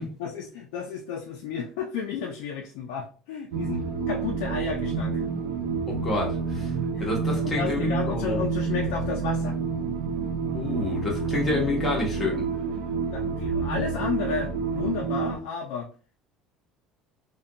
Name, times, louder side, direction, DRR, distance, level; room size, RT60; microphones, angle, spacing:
voice 1, 0.2-5.3 6.9-7.1 7.4-9.6 13.1-15.9, left 6 dB, 85° left, 1 dB, 0.4 m, -32 dB
sound 1, 3.5-15.4, right 5 dB, 85° right, 0.4 m, -29 dB
voice 2, 5.9-6.7 7.0-8.4 10.5-12.5, left 2 dB, 20° left, -2 dB, 0.8 m, -28 dB
2.4 x 2.2 x 2.6 m, 0.39 s
cardioid pair, 165°, 0 cm